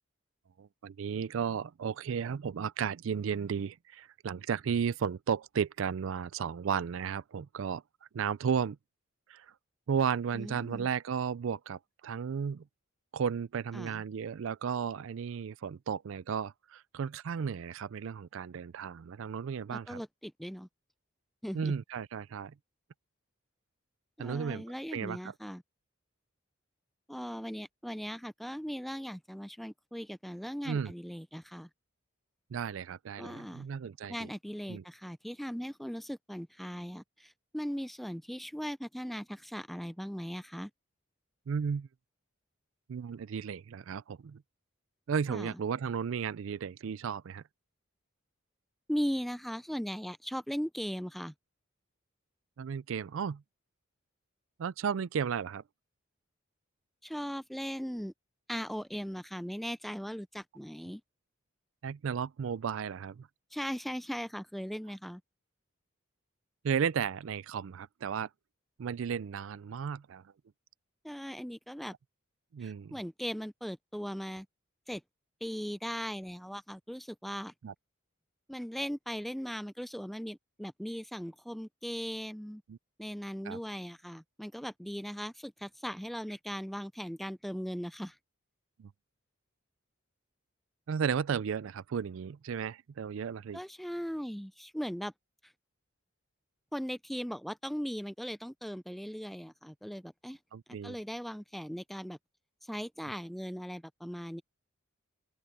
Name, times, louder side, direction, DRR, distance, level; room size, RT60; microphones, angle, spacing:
voice 1, 0.6-7.8 8.1-8.8 9.3-9.5 9.9-12.6 13.1-20.0 21.5-22.5 24.2-24.6 24.9-25.3 30.7-30.9 32.5-34.3 34.7-34.8 41.5-41.9 42.9-44.4 45.1-47.4 52.6-53.4 54.6-55.6 61.8-63.3 66.6-68.3 68.8-70.2 72.5-73.0 77.6-77.7 82.7-82.8 83.5-83.6 88.8-88.9 90.9-93.6 100.5-101.0, right 7 dB, 70° right, 0.4 m, -34 dB
voice 2, 10.3-10.9 13.7-14.0 19.7-20.7 21.4-21.7 24.2-25.6 27.1-31.7 33.2-33.7 34.1-40.7 45.3-45.6 48.9-51.3 57.0-58.1 58.5-61.0 63.5-65.2 71.0-71.9 72.6-74.5 74.9-75.0 75.4-77.5 78.5-82.6 83.0-88.2 93.5-95.1 95.4-95.5 96.7-100.4 100.8-102.2 102.6-104.4, equal, ahead, 0.4 m, -38 dB
open air
head